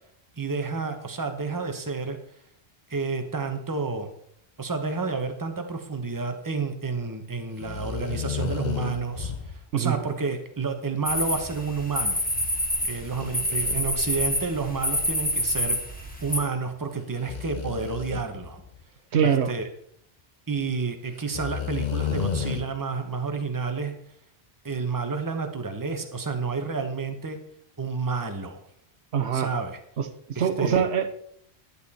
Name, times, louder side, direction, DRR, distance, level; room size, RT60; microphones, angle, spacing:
voice 1, 0.4-2.2 2.9-4.1 4.6-12.2 12.8-15.8 16.2-18.6 19.2-19.7 20.5-23.9 24.6-27.4 27.8-28.6 29.3-29.8 30.6-30.8, right 4 dB, 20° right, 6 dB, 1.0 m, -30 dB
sound 1, 7.6-9.6 13.1-14.7 15.3-15.4 17.2-18.8 20.6-20.7 21.3-22.6, left 7 dB, 45° left, 1.0 m, -32 dB
sound 2, 11.1-16.4, left 1 dB, 10° left, 1.7 m, -27 dB
voice 2, 19.1-19.5 29.1-29.5 30.0-30.1 30.4-31.2, right 7 dB, 80° right, 8 dB, 1.1 m, -23 dB
11.0 x 8.4 x 4.2 m, 0.68 s
omnidirectional pair, 1.1 m